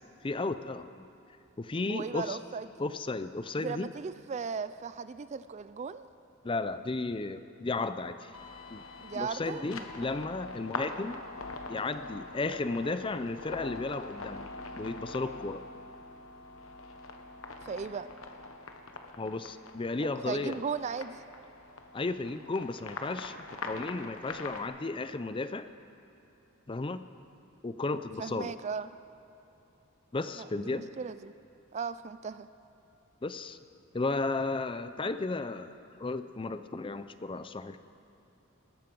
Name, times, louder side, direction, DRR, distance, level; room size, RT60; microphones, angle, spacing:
voice 1, 0.2-1.1 1.6-2.4 2.8-3.9 6.4-8.3 8.7-8.8 9.1-11.2 11.7-14.5 14.8-15.6 19.2-20.6 21.9-25.7 26.7-27.0 27.6-28.5 30.1-30.9 33.2-33.6 33.9-37.8, left 3 dB, 25° left, 12 dB, 0.5 m, -34 dB
voice 2, 1.9-2.7 3.6-6.1 9.0-10.1 17.6-18.1 20.0-21.2 28.2-28.9 30.3-31.3 31.7-32.5, right 5 dB, 35° right, 14 dB, 0.3 m, -37 dB
sound 1, 8.3-24.6, left 3 dB, 80° left, 1.2 m, -44 dB
19.0 x 13.5 x 5.3 m, 3.0 s
head